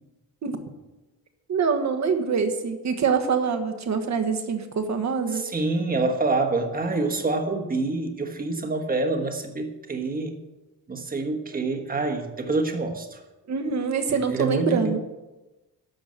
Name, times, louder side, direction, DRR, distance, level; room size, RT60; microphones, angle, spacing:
voice 1, 1.5-5.4 13.5-15.0, right 5 dB, 45° right, 6 dB, 1.4 m, -25 dB
voice 2, 5.3-10.4 10.9-13.2 14.1-14.9, right 3 dB, 25° right, 5 dB, 1.3 m, -26 dB
12.0 x 7.3 x 7.5 m, 1.1 s
wide cardioid pair, 175°, 37 cm